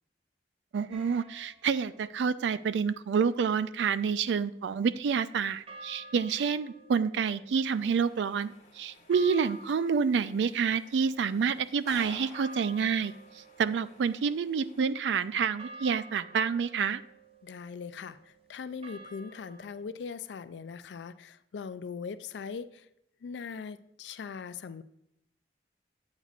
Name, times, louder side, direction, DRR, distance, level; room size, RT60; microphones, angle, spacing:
voice 1, 0.7-13.1 13.6-17.0, right 6 dB, 85° right, 15 dB, 0.3 m, -28 dB
sound 1, 0.9-2.0 5.7-19.8, right 1 dB, 35° right, 0.6 m, -52 dB
sound 2, 7.7-14.8, left 2 dB, 40° left, 1.3 m, -53 dB
voice 2, 17.4-22.9 23.2-24.8, left 5 dB, 85° left, 13 dB, 0.4 m, -40 dB
8.6 x 8.1 x 2.4 m, 0.81 s
head